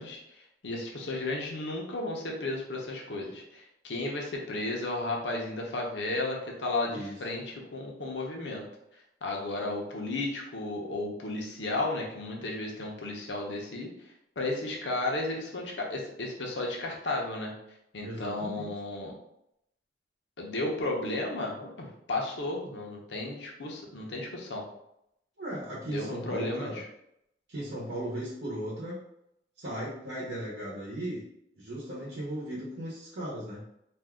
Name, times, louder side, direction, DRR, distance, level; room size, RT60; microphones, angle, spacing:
voice 1, 0.0-8.6 9.2-13.9 14.4-17.5 17.9-19.1 20.4-24.6 25.8-26.8, left 2 dB, 75° left, -1 dB, 0.7 m, -34 dB
voice 2, 6.9-7.2 18.0-18.7 25.4-26.8 27.5-29.0 29.6-31.2 31.5-33.6, right 1 dB, 70° right, -6 dB, 0.9 m, -37 dB
2.6 x 2.3 x 3.5 m, 0.78 s
head